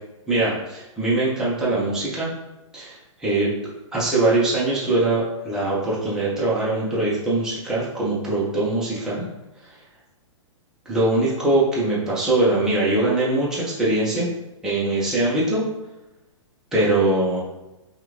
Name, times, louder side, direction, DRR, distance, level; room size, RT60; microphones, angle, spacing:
voice 1, 0.3-2.3 2.7-3.5 3.9-9.2 10.9-14.3 14.6-15.6 16.7-17.4, right 2 dB, 5° right, -8 dB, 0.8 m, -22 dB
3.4 x 2.4 x 3.0 m, 0.99 s
hypercardioid pair, 140°, 17 cm